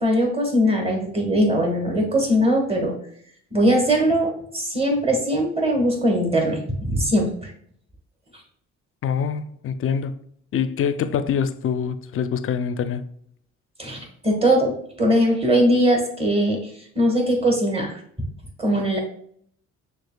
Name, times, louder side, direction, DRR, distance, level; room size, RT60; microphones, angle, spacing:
voice 1, 0.0-2.9 3.5-7.3 13.8-16.6 16.9-18.0 18.6-19.0, equal, 20° right, 1.5 m, -20 dB
voice 2, 9.0-10.1 10.5-13.0, left 7 dB, 45° left, 0.4 m, -25 dB
6.2 x 2.4 x 2.3 m
supercardioid pair, 70°, 32 cm